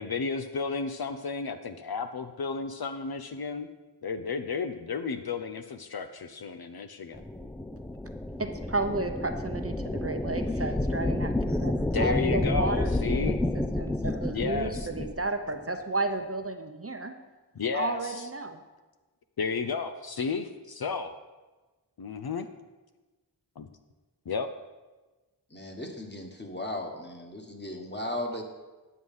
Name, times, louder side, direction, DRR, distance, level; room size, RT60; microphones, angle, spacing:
voice 1, 0.0-3.7 4.0-7.2 11.9-13.4 14.3-14.9 17.6-18.3 19.4-21.1 22.0-22.5 23.6-23.7 24.3-24.5, left 5 dB, 60° left, 8 dB, 0.6 m, -33 dB
sound 1, 7.1-15.2, left 1 dB, 5° left, 0.3 m, -30 dB
voice 2, 8.4-13.4 13.8-17.1 17.7-18.6, right 3 dB, 35° right, 6 dB, 0.7 m, -32 dB
voice 3, 25.5-28.4, left 1 dB, 25° left, 2 dB, 1.5 m, -36 dB
9.6 x 6.3 x 5.5 m, 1.2 s
wide cardioid pair, 45°, 42 cm